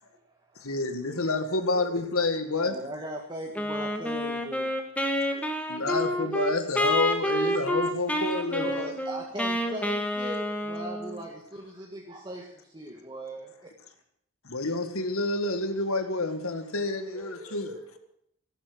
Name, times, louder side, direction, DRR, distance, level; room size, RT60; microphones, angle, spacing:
voice 1, 0.0-0.7 2.6-4.8 8.4-13.7, right 1 dB, 20° right, 1.8 m, -39 dB
voice 2, 0.6-2.8 5.7-8.9 14.4-17.7, left 2 dB, 80° left, 2.0 m, -28 dB
voice 3, 1.1-1.5 1.8-1.9 2.6-2.8 5.3-5.7 7.4-7.6 9.2-9.3 9.6-9.7 17.1-18.0, equal, 40° right, 4.9 m, -48 dB
Wind instrument woodwind instrument, 3.6-11.2, equal, 5° left, 1.5 m, -29 dB
14.5 x 12.5 x 7.9 m
head